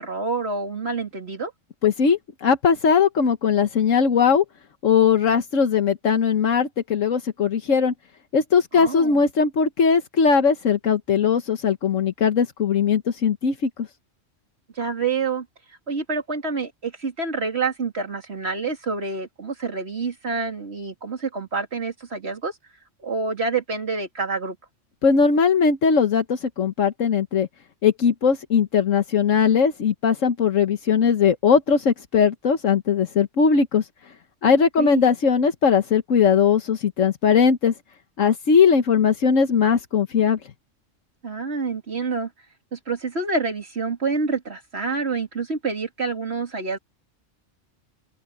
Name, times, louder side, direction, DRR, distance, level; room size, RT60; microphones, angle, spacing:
voice 1, 0.0-1.5 8.7-9.2 14.7-15.5 15.9-22.5 23.0-24.6 34.5-35.0 41.2-42.3 42.7-46.8, right 4 dB, 55° right, 3.1 m, -27 dB
voice 2, 1.8-4.4 4.8-7.9 8.3-13.9 25.0-27.5 27.8-33.9 34.4-37.7 38.2-40.4, left 6 dB, 80° left, 1.5 m, -19 dB
open air
omnidirectional pair, 1.3 m